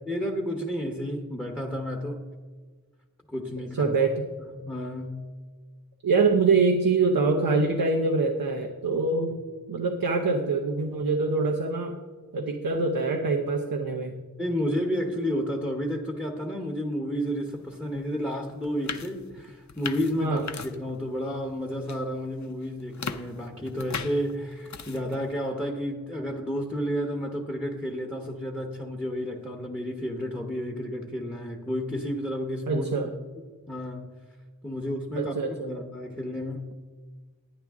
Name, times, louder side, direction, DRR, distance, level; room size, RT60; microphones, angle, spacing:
voice 1, 0.1-2.2 3.3-4.0 4.4-5.2 14.4-32.8 33.7-34.1 34.6-36.7, equal, 5° left, 2 dB, 1.0 m, -31 dB
voice 2, 3.8-4.3 6.0-9.4 9.7-12.0 12.3-14.1 20.2-20.4 32.7-33.1 35.2-35.7, right 4 dB, 80° right, 3 dB, 0.8 m, -24 dB
sound 1, 17.9-18.0 18.5-21.1 21.4-22.0 22.4-25.3, left 5 dB, 55° left, 0.6 m, -38 dB
10.0 x 9.9 x 3.6 m, 1.4 s
wide cardioid pair, 70°, 34 cm